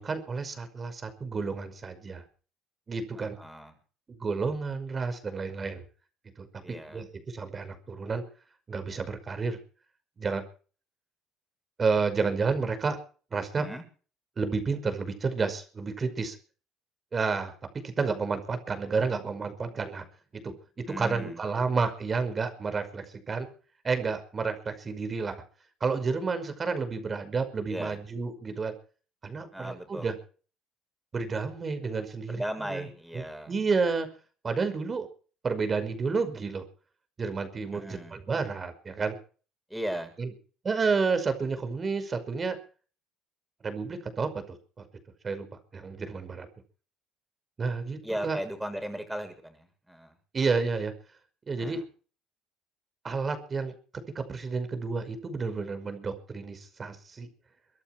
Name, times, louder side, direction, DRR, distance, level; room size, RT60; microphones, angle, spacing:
voice 1, 0.0-2.2 2.9-3.4 4.1-5.8 6.4-8.2 8.7-9.6 10.2-10.4 11.8-13.0 13.3-13.7 14.4-16.4 17.1-17.5 17.8-20.0 20.3-23.5 23.8-25.4 25.8-28.7 29.2-30.2 31.1-32.9 33.1-34.1 34.4-35.1 35.4-36.6 37.2-39.2 40.2-40.3 40.6-42.6 43.6-44.6 45.2-45.5 45.7-46.5 47.6-48.4 50.3-50.9 51.5-51.8 53.0-53.7 54.2-57.3, right 4 dB, 30° right, 9 dB, 5.5 m, -30 dB
voice 2, 3.2-3.7 6.6-7.0 13.6-13.8 20.9-21.4 27.7-28.0 29.5-30.1 32.3-33.5 37.7-38.2 39.7-40.1 48.0-50.1 51.6-51.8, equal, 5° right, 6 dB, 7.2 m, -37 dB
24.5 x 11.5 x 4.9 m, 0.40 s
supercardioid pair, 90°, 0 cm